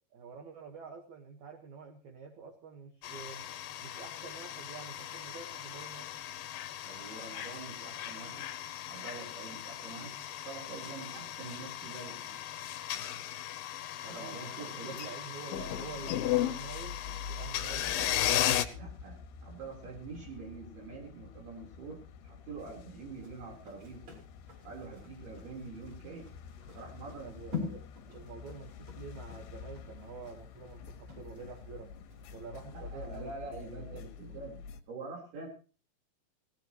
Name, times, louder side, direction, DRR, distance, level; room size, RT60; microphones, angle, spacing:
voice 1, 0.1-3.5 3.8-6.1 14.0-18.2 27.2-27.8 28.1-32.0 32.3-34.5, right 5 dB, 55° right, 3 dB, 2.5 m, -48 dB
sound 1, 3.0-18.7, left 12 dB, 70° left, 2.5 m, -36 dB
voice 2, 6.8-8.5 8.9-10.1 10.5-12.4 14.1-15.1 18.7-24.1 24.6-26.3 26.7-27.8 32.7-34.6 34.9-35.5, right 4 dB, 70° right, -1 dB, 6.0 m, -45 dB
sound 2, 15.6-34.8, left 6 dB, 90° left, 3.3 m, -48 dB
sound 3, 23.2-31.7 32.1-32.2, left 5 dB, 40° right, 6.4 m, -45 dB
18.5 x 17.5 x 3.1 m, 0.37 s
omnidirectional pair, 4.6 m